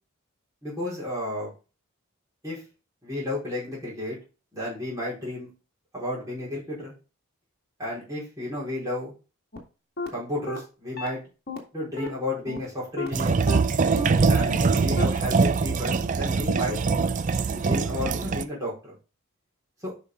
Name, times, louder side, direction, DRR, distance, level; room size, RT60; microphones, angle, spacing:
voice 1, 0.6-1.5 2.4-2.6 3.0-4.2 4.5-5.5 5.9-6.9 7.8-9.1 10.1-11.2 11.7-13.4 14.3-16.8 17.5-19.0 19.8-19.9, left 1 dB, 15° right, -7 dB, 4.5 m, -32 dB
sound 1, 9.5-9.6 10.0-10.1 10.5-10.6 11.0-11.1 11.5-11.6 12.0-12.1 12.5-12.6 13.0-13.1 13.5-13.6 14.0-14.1 14.5-14.6 15.0-15.1, left 1 dB, 45° left, 1.9 m, -32 dB
sound 2, 13.1-18.4, right 4 dB, 35° right, 0.4 m, -23 dB
8.3 x 5.5 x 3.7 m, 0.33 s
head